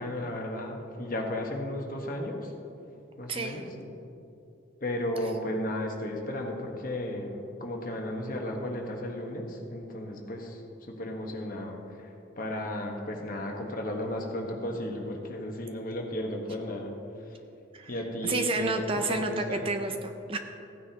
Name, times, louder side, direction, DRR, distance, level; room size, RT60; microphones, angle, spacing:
voice 1, 0.0-2.5 3.2-3.9 4.8-7.3 7.6-10.6 10.9-12.1 12.4-16.9 17.9-18.8 19.1-19.7, left 1 dB, 45° left, 1 dB, 1.2 m, -34 dB
voice 2, 3.3-3.6 17.7-17.9 18.2-20.4, right 2 dB, 30° right, 6 dB, 0.5 m, -30 dB
15.5 x 9.4 x 2.9 m, 2.8 s
head